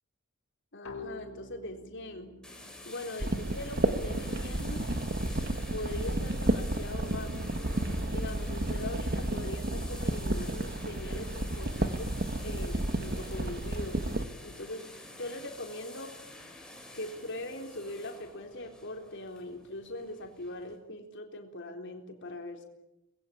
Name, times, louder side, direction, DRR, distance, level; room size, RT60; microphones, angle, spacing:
voice 1, 0.7-2.3 2.9-4.9 5.7-7.5 8.1-14.0 14.4-14.9 15.2-16.1 16.9-22.6, left 1 dB, 60° left, 3 dB, 3.9 m, -41 dB
sound 1, 0.8-4.3, left 3 dB, 80° left, 5.0 m, -48 dB
sound 2, 2.4-20.8, left 2 dB, 5° left, 4.7 m, -48 dB
sound 3, 3.2-14.2, right 1 dB, 50° right, 1.6 m, -32 dB
25.0 x 21.0 x 8.9 m, 0.93 s
head